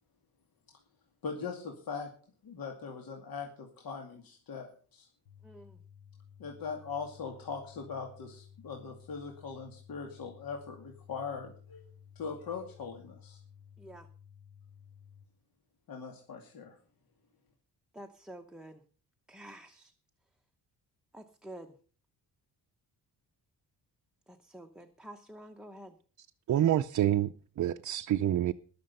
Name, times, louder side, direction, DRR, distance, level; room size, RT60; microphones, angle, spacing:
voice 1, 1.2-2.1 2.4-5.1 6.4-11.8 12.2-13.4 15.9-16.8, left 5 dB, 60° left, 2.4 m, -41 dB
sound 1, 5.2-15.2, left 8 dB, 85° left, 1.8 m, -56 dB
voice 2, 5.4-5.8 13.8-14.1 17.9-18.8 19.3-19.9 21.1-21.8 24.3-26.0, right 1 dB, ahead, 0.8 m, -49 dB
voice 3, 26.5-28.5, right 11 dB, 50° right, 0.6 m, -27 dB
20.0 x 6.7 x 5.4 m
wide cardioid pair, 165°, 40 cm